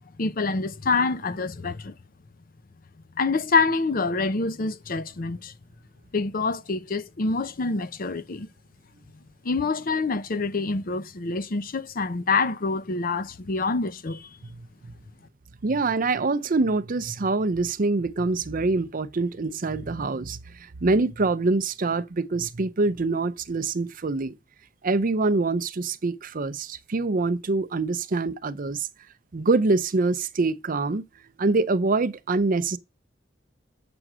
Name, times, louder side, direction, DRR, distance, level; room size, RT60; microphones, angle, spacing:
voice 1, 0.2-1.9 3.2-5.5 6.1-8.5 9.4-14.3, left 3 dB, 50° left, 0.7 m, -26 dB
voice 2, 14.6-14.9 15.6-20.4 20.8-24.4 24.8-28.9 29.3-31.0 31.4-32.8, right 3 dB, 50° right, 0.6 m, -25 dB
7.7 x 6.1 x 6.1 m
head